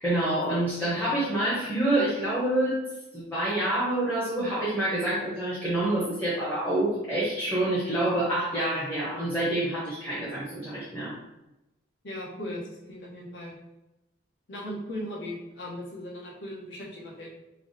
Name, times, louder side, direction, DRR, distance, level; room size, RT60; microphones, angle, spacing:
voice 1, 0.0-2.8 3.1-11.1, right 1 dB, 10° left, -9 dB, 0.7 m, -27 dB
voice 2, 12.0-13.6 14.5-17.4, left 1 dB, 60° left, -4 dB, 1.0 m, -38 dB
3.3 x 2.0 x 3.9 m, 0.95 s
head